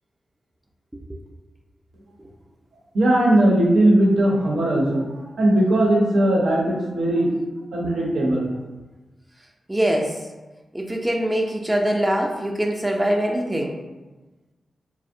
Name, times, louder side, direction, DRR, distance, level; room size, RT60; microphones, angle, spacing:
voice 1, 2.9-7.3 7.7-8.5, right 1 dB, 75° right, -3 dB, 0.6 m, -19 dB
voice 2, 9.7-10.2 10.7-13.8, right 1 dB, 15° right, 1 dB, 0.4 m, -23 dB
2.5 x 2.0 x 2.6 m, 1.1 s
supercardioid pair, 40°, 0 cm